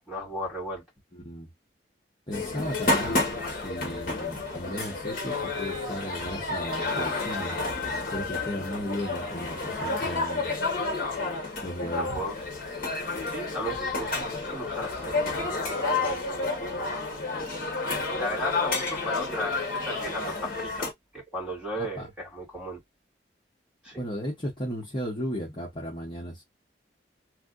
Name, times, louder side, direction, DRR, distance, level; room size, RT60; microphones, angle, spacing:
voice 1, 0.1-0.8 11.9-12.3 13.3-17.5 18.2-20.9 21.1-22.8 23.8-24.0, equal, 5° right, 2.5 m, -36 dB
voice 2, 1.1-1.5 2.3-7.5 8.1-10.5 11.6-12.2 21.7-22.1 23.9-26.4, equal, 25° left, 1.1 m, -35 dB
sound 1, 2.3-20.9, left 3 dB, 50° left, 1.1 m, -30 dB
3.3 x 2.7 x 2.4 m
head